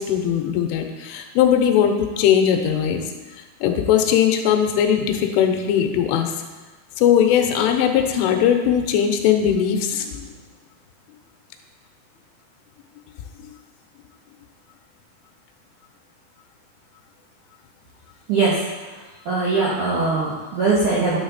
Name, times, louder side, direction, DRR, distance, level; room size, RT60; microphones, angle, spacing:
voice 1, 0.0-3.0 3.6-6.3 7.0-10.3, left 9 dB, 85° left, 4 dB, 3.2 m, -19 dB
voice 2, 18.3-19.0 19.3-21.2, right 3 dB, 80° right, -6 dB, 1.7 m, -21 dB
9.4 x 7.8 x 4.0 m, 1.3 s
omnidirectional pair, 5.8 m